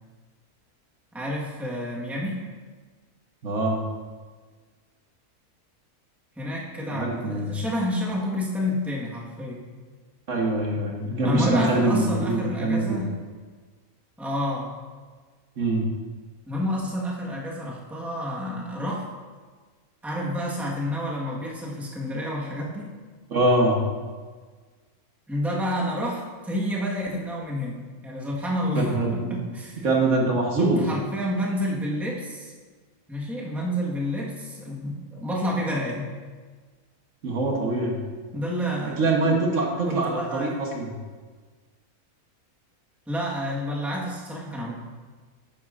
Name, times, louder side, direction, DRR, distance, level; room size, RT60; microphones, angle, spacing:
voice 1, 1.1-2.4 6.4-9.7 11.2-13.1 14.2-14.7 16.5-19.1 20.0-22.9 25.3-29.8 30.6-32.5 33.1-36.1 38.3-39.0 39.9-40.6 43.1-44.7, equal, ahead, -4 dB, 1.2 m, -29 dB
voice 2, 3.4-3.8 6.9-7.5 10.3-13.0 15.6-15.9 23.3-23.8 28.7-29.3 29.8-30.8 37.2-38.0 39.0-40.9, right 2 dB, 55° right, 0 dB, 1.4 m, -24 dB
11.5 x 9.0 x 2.5 m, 1.5 s
omnidirectional pair, 1.6 m